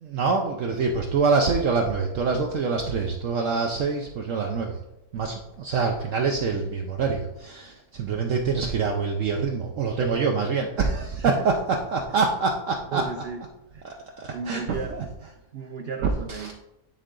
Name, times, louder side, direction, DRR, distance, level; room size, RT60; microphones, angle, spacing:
voice 1, 0.0-4.8 5.1-13.0 13.8-15.1 16.3-16.5, right 4 dB, 65° right, 2 dB, 0.9 m, -25 dB
voice 2, 12.9-13.4 13.7-13.8 14.3-14.9 15.5-16.5, right 5 dB, 85° right, 5 dB, 0.5 m, -33 dB
9.6 x 3.8 x 3.7 m, 0.90 s
omnidirectional pair, 1.6 m